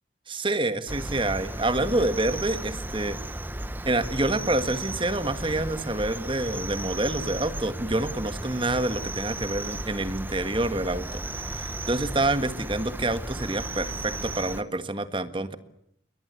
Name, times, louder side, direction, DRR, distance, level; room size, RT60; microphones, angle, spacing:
voice 1, 0.3-3.2 3.8-11.2 11.5-15.6, right 2 dB, 25° right, 11 dB, 1.6 m, -27 dB
Cricket, 0.9-14.6, right 1 dB, 10° right, 1.1 m, -35 dB
28.5 x 23.0 x 8.3 m, 0.72 s
head